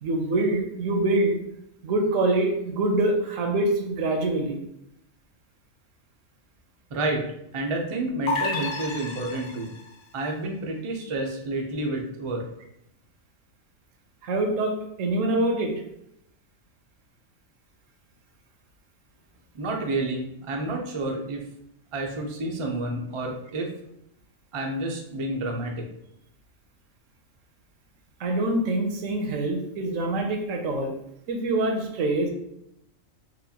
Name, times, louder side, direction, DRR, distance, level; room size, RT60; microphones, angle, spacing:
voice 1, 0.0-1.3 1.8-4.6 14.2-15.7 28.2-30.9 31.3-32.3, right 2 dB, 75° right, 3 dB, 1.0 m, -25 dB
voice 2, 6.9-7.2 7.5-9.7 10.1-12.4 19.5-21.4 21.9-23.7 24.5-25.9, right 2 dB, 50° right, 1 dB, 0.3 m, -29 dB
sound 1, 8.3-9.9, left 3 dB, 65° left, 0.5 m, -30 dB
4.3 x 2.4 x 2.7 m, 0.79 s
omnidirectional pair, 1.4 m